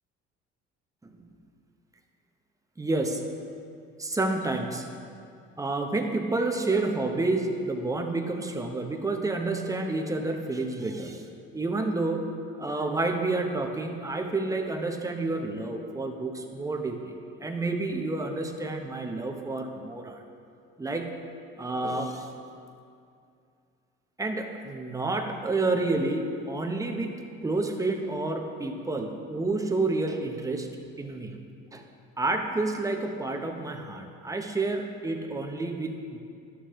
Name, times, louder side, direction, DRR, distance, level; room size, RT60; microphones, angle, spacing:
voice 1, 2.8-3.2 4.0-5.0 5.6-11.2 11.5-17.1 17.4-20.2 20.8-21.2 21.6-22.3 24.2-30.7 31.0-31.4 31.7-31.8 32.2-36.2, right 2 dB, 10° right, 3 dB, 0.8 m, -29 dB
11.0 x 6.5 x 3.1 m, 2.4 s
supercardioid pair, 90°, 29 cm